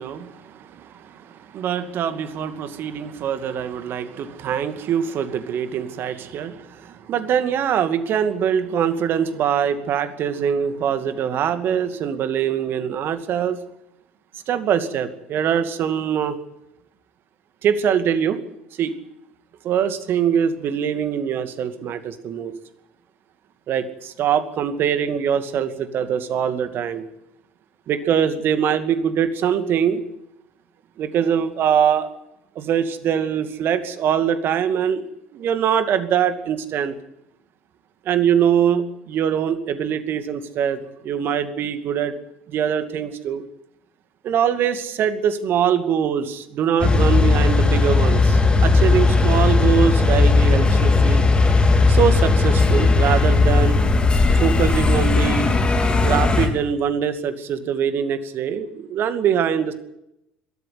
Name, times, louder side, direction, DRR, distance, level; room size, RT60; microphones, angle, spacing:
voice 1, 0.0-13.6 14.5-16.4 17.6-18.4 18.8-18.9 19.6-22.5 23.7-27.0 27.9-30.0 31.0-32.1 32.6-35.1 35.3-36.9 38.0-42.1 42.5-43.4 44.2-51.2 51.9-53.8 54.4-55.5 56.0-59.7, right 8 dB, 45° right, 10 dB, 2.4 m, -23 dB
sound 1, 46.8-56.5, left 3 dB, 20° left, 4.1 m, -17 dB
22.0 x 13.5 x 9.6 m, 0.82 s
figure-of-eight pair, 65°, 5 cm